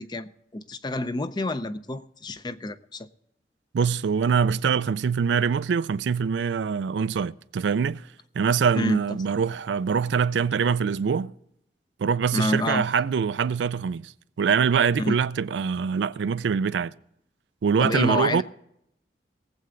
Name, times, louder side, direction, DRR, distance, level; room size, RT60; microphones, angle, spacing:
voice 1, 0.0-3.1 8.7-9.0 12.3-12.9 15.0-15.2 17.8-18.4, left 1 dB, 25° left, 0.5 m, -28 dB
voice 2, 3.7-8.0 8.4-11.3 12.0-14.1 14.4-16.9 17.6-18.4, right 6 dB, 90° right, 0.4 m, -24 dB
18.5 x 7.8 x 3.8 m
head